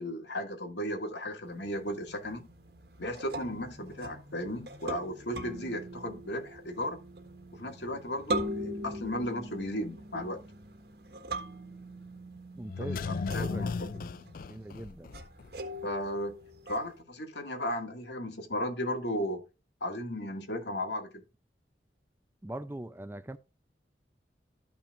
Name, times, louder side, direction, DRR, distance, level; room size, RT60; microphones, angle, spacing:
voice 1, 0.0-2.5 3.0-7.0 7.5-10.4 12.9-13.7 15.8-16.3 16.7-19.4 19.8-21.2, left 1 dB, 80° left, 2.1 m, -35 dB
sound 1, 1.4-17.0, right 1 dB, 65° right, 1.5 m, -41 dB
voice 2, 12.5-13.1 13.5-14.1 14.5-15.2 22.4-23.4, right 1 dB, 15° right, 0.4 m, -41 dB
sound 2, 12.7-15.5 15.8-15.9, left 4 dB, 50° left, 0.3 m, -35 dB
13.5 x 5.7 x 2.5 m
head